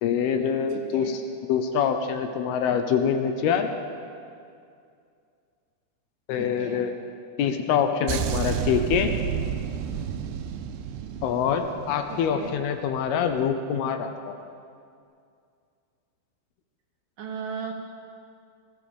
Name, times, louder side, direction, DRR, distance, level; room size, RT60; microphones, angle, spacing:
voice 1, 0.0-1.2 1.5-3.7 6.3-6.9 7.4-9.1 11.2-14.4, left 7 dB, 75° left, 7 dB, 2.6 m, -25 dB
voice 2, 0.7-1.2 6.4-6.8 12.1-12.6 17.2-17.7, right 6 dB, 65° right, 1 dB, 2.5 m, -36 dB
sound 1, 8.1-12.6 12.9-13.2, right 7 dB, 85° right, 2.7 m, -31 dB
19.5 x 14.0 x 5.2 m, 2.4 s
omnidirectional pair, 4.8 m